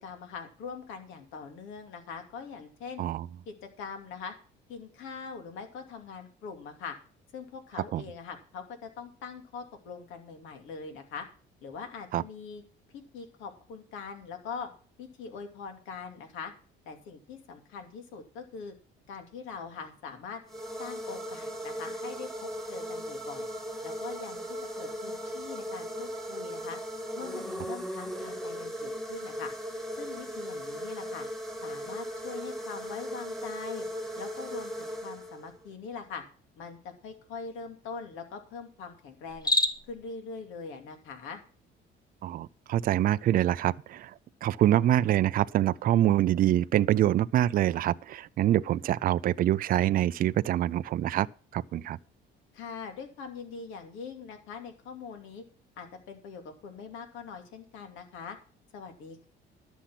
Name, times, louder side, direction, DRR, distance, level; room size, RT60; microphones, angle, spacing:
voice 1, 0.0-3.0 3.5-4.3 4.7-7.0 7.3-11.3 11.6-12.6 12.9-14.7 15.0-16.5 16.9-18.7 19.1-20.4 20.8-23.5 23.8-26.8 27.2-29.5 29.9-31.3 31.6-33.9 34.2-36.2 36.6-39.5 39.9-41.4 52.5-55.4 55.8-58.4 58.7-59.3, left 5 dB, 85° left, 2.6 m, -42 dB
sound 1, 20.5-35.7, equal, ahead, 1.8 m, -37 dB
Cricket, 39.3-40.0, left 2 dB, 20° left, 1.0 m, -27 dB
voice 2, 42.2-44.1 44.4-51.3 51.5-52.0, right 12 dB, 45° right, 0.4 m, -25 dB
11.5 x 7.2 x 5.9 m
cardioid pair, 125°, 20 cm